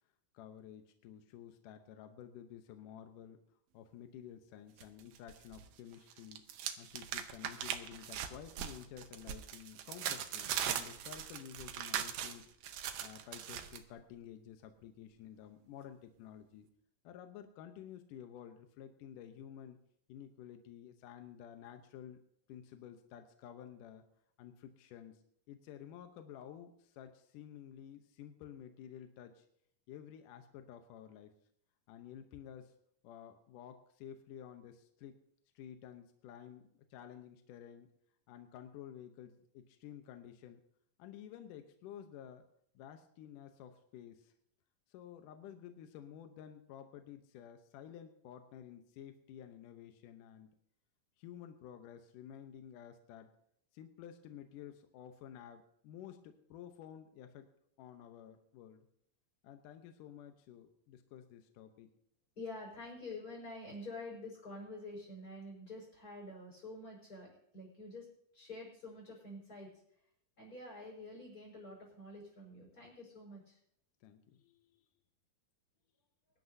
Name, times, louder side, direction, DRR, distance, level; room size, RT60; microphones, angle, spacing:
voice 1, 0.3-3.4 3.7-6.4 6.8-12.5 13.0-16.7 17.0-19.8 20.1-22.2 22.5-24.0 24.4-25.2 25.5-29.5 29.9-31.3 31.9-32.7 33.0-35.2 35.6-37.9 38.3-40.6 41.0-42.4 42.8-44.3 44.9-50.5 51.2-53.3 53.7-57.5 57.8-58.9 59.4-61.9 74.0-74.9, left 9 dB, 75° left, 7 dB, 2.4 m, -52 dB
sound 1, 4.8-5.7 5.9-13.8, right 10 dB, 90° right, 2.7 m, -40 dB
voice 2, 62.4-68.1 68.3-69.7 70.4-73.6, left 2 dB, 25° left, -4 dB, 5.6 m, -48 dB
23.0 x 12.0 x 2.7 m, 0.70 s
omnidirectional pair, 3.9 m